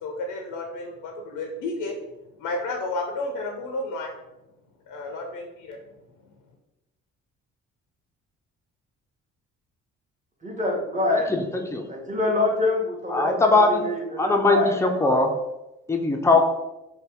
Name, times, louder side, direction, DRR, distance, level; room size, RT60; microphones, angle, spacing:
voice 1, 0.0-2.0 2.4-4.1 4.9-5.8, left 2 dB, 60° left, 2 dB, 0.6 m, -31 dB
voice 2, 10.4-11.3 11.9-14.9, left 2 dB, 20° right, 0 dB, 0.9 m, -26 dB
voice 3, 11.3-11.8 13.1-13.8 14.2-15.3 15.9-16.5, left 3 dB, 10° left, 3 dB, 0.4 m, -20 dB
2.6 x 2.2 x 3.4 m, 0.94 s
hypercardioid pair, 45°, 37 cm